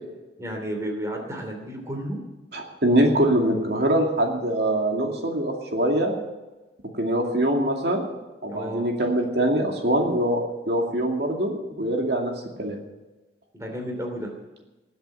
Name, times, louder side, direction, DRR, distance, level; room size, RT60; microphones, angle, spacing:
voice 1, 0.4-2.2 8.5-8.9 13.5-14.3, equal, 15° right, 2 dB, 2.9 m, -32 dB
voice 2, 2.5-6.1 7.0-8.1 8.4-12.3 12.6-12.8, right 1 dB, 65° right, 1 dB, 2.4 m, -23 dB
19.5 x 8.0 x 7.7 m, 1.1 s
head